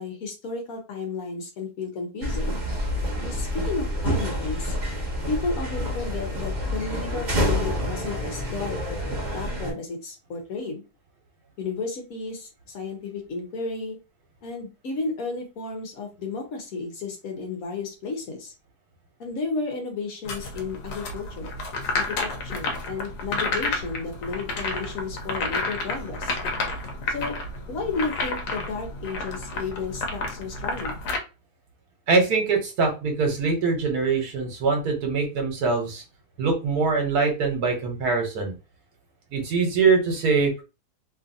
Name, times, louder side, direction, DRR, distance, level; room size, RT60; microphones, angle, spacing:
voice 1, 0.0-2.6 3.2-4.8 5.3-10.8 11.6-14.0 14.4-18.5 19.2-21.5 21.9-26.4 27.1-27.3 27.7-31.0, left 4 dB, 65° left, 3 dB, 1.2 m, -33 dB
sound 1, 2.2-9.7, equal, 35° right, 0.9 m, -28 dB
sound 2, 20.2-31.2, left 3 dB, 85° left, 1.3 m, -31 dB
voice 2, 32.1-36.0 36.4-38.5 39.3-40.6, right 4 dB, 75° right, 3 dB, 1.5 m, -23 dB
3.1 x 2.5 x 2.6 m, 0.30 s
omnidirectional pair, 1.7 m